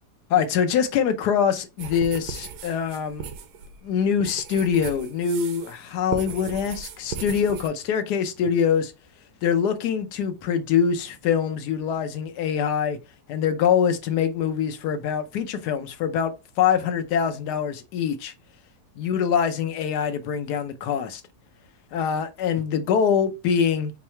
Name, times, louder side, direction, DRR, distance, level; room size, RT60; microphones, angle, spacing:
voice 1, 0.3-3.2 3.8-8.9 9.4-13.0 13.3-16.3 16.6-18.3 19.0-21.2 21.9-23.9, left 7 dB, 80° left, 1.3 m, -24 dB
sound 1, 1.8-5.8 6.1-7.7, right 7 dB, 85° right, 1.3 m, -37 dB
4.6 x 2.0 x 4.3 m
omnidirectional pair, 1.7 m